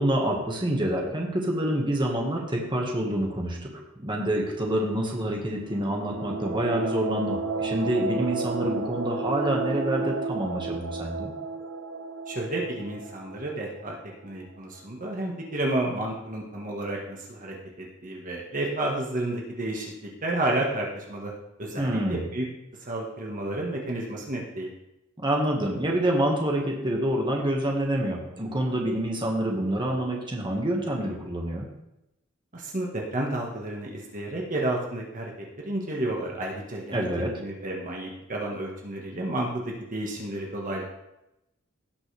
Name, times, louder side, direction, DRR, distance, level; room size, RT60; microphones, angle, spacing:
voice 1, 0.0-3.7 4.0-11.3 21.8-22.2 25.2-31.7 36.9-37.3, right 1 dB, 25° right, -1 dB, 1.7 m, -27 dB
sound 1, 5.6-14.3, right 3 dB, 65° right, 0.9 m, -32 dB
voice 2, 12.3-13.9 14.2-19.9 20.2-21.3 21.6-22.4 22.9-24.7 32.5-35.3 35.6-37.0 37.4-39.6 39.9-40.8, right 1 dB, 40° right, -1 dB, 1.5 m, -31 dB
17.0 x 6.0 x 3.4 m, 0.89 s
head